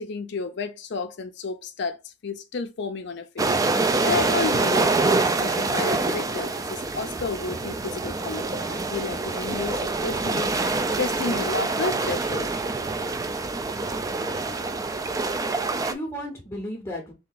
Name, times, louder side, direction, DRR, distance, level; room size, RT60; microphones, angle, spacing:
voice 1, 0.0-10.5 11.0-12.5, left 4 dB, 60° left, 0.5 m, -31 dB
sound 1, 3.4-15.9, right 3 dB, 20° right, 0.3 m, -26 dB
voice 2, 15.2-17.1, equal, 15° left, 0.7 m, -35 dB
3.3 x 2.8 x 3.9 m
head